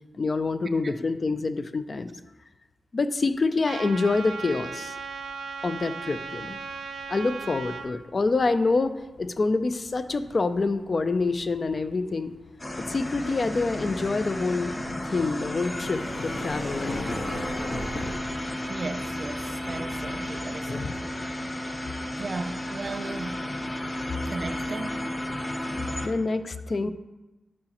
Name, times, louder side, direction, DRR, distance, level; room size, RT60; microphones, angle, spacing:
voice 1, 0.2-2.1 2.9-5.0 5.6-6.6 7.1-12.3 12.8-14.8 15.0-17.2 20.7-20.9 26.0-26.9, left 3 dB, 45° left, 11 dB, 0.4 m, -26 dB
Trumpet, 3.6-7.9, right 4 dB, 85° right, 0.6 m, -37 dB
sound 1, 4.3-4.5 4.9-21.7, left 1 dB, 80° left, 2.5 m, -41 dB
machine him, 12.6-26.1, left 1 dB, 25° left, 0.8 m, -33 dB
voice 2, 18.7-21.1 22.2-23.3 24.3-25.1 26.0-26.1, right 3 dB, 45° right, 8 dB, 0.4 m, -36 dB
11.5 x 4.8 x 3.0 m, 1.1 s
wide cardioid pair, 90°, 0 cm